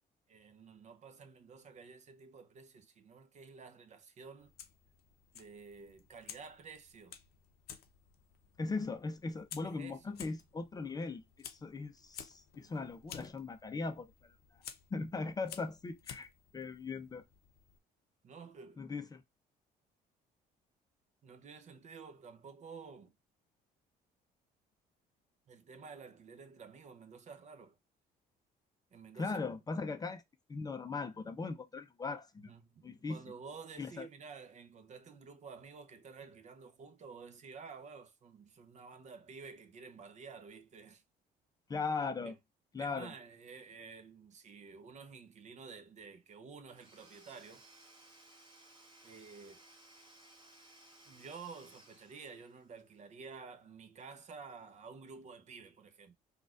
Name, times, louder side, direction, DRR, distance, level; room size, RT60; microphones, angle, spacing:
voice 1, 0.3-4.5 5.3-7.1 9.6-10.2 18.2-18.8 21.2-23.1 25.5-27.8 28.9-29.4 32.4-41.0 42.2-42.4 42.8-47.6 49.0-49.6 51.1-56.1, right 5 dB, 45° right, 0.7 m, -51 dB
Fire, 4.4-17.8, left 9 dB, 70° left, 0.7 m, -54 dB
voice 2, 8.6-14.3 14.9-17.2 18.8-19.2 29.2-30.2 30.5-32.5 32.8-33.2 33.8-34.1 41.7-42.3 42.7-43.1, left 4 dB, 20° left, 0.5 m, -39 dB
Domestic sounds home sounds / Tools, 46.7-52.8, right 1 dB, 30° right, 1.3 m, -60 dB
3.9 x 2.4 x 2.3 m
cardioid pair, 110°, 17 cm